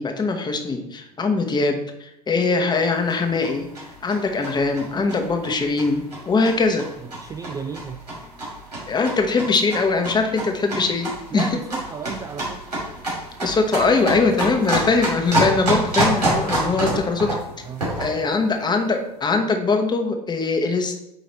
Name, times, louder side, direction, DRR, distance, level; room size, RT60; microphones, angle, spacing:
voice 1, 0.0-3.7 4.0-6.9 8.9-11.5 13.4-17.4 18.0-20.9, left 3 dB, 20° left, 4 dB, 1.2 m, -21 dB
sound 1, 2.8-18.2, right 1 dB, 85° right, 2.6 m, -27 dB
voice 2, 7.0-8.0 11.3-12.6 16.7-16.8 17.6-18.4, right 6 dB, 15° right, 7 dB, 0.4 m, -34 dB
8.9 x 3.1 x 4.2 m, 0.85 s
figure-of-eight pair, 80°, 20 cm